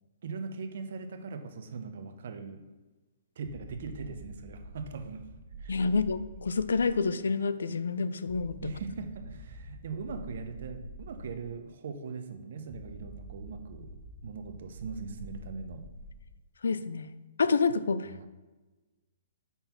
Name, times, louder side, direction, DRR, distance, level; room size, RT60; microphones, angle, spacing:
voice 1, 0.2-2.6 3.4-5.3 5.6-5.8 8.6-13.9 14.2-15.8 18.2-18.3, right 5 dB, 65° right, 7 dB, 0.8 m, -40 dB
sound 1, 3.4-7.1 8.2-11.5 12.7-16.4, equal, 85° right, 1.3 m, -47 dB
voice 2, 5.7-8.7 16.6-17.1 17.4-18.1, left 4 dB, 85° left, 14 dB, 0.4 m, -28 dB
5.5 x 4.3 x 5.8 m, 1.2 s
hypercardioid pair, 135°, 0 cm